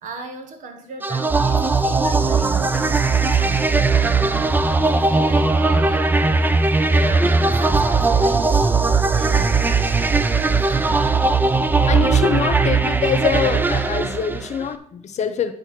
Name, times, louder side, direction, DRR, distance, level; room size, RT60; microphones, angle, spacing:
voice 1, 0.0-4.4 4.8-6.2 6.9-8.7 9.1-11.2, right 3 dB, 80° right, 5 dB, 1.4 m, -36 dB
sound 1, 1.0-14.7, right 3 dB, 15° right, 0.5 m, -18 dB
voice 2, 11.9-15.5, left 7 dB, 60° left, 8 dB, 0.9 m, -24 dB
9.4 x 3.3 x 6.1 m, 0.68 s
cardioid pair, 115°, 13 cm